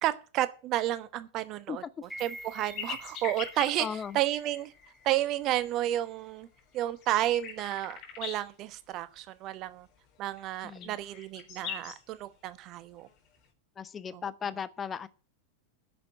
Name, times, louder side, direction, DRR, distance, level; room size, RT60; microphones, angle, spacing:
voice 1, 0.0-1.8 2.2-3.9 4.1-4.7 5.0-6.5 6.7-9.9 10.2-13.1 14.1-14.2, right 14 dB, 35° right, 1.0 m, -31 dB
sound 1, 2.0-6.2 6.5-6.6, equal, ahead, 3.5 m, -49 dB
sound 2, 2.1-4.1 4.7-4.8 5.2-5.3 5.6-5.8 6.4-8.5 10.4-12.0 13.1-13.4, left 7 dB, 40° left, 3.9 m, -41 dB
voice 2, 3.8-4.2 10.6-11.0 13.8-15.1, left 7 dB, 20° left, 0.7 m, -36 dB
10.0 x 6.9 x 8.9 m
figure-of-eight pair, 90°, 0 cm